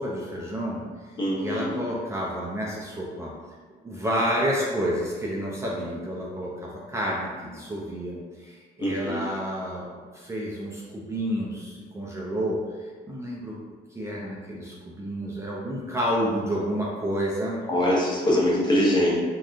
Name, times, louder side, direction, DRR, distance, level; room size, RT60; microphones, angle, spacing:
voice 1, 0.0-3.3 3.8-9.9 10.1-13.6 13.9-17.6, equal, 15° right, -4 dB, 0.4 m, -30 dB
voice 2, 1.2-1.8 8.8-9.2 17.7-19.1, left 1 dB, 25° left, -5 dB, 0.8 m, -23 dB
3.5 x 2.2 x 2.5 m, 1.5 s
cardioid pair, 110°, 17 cm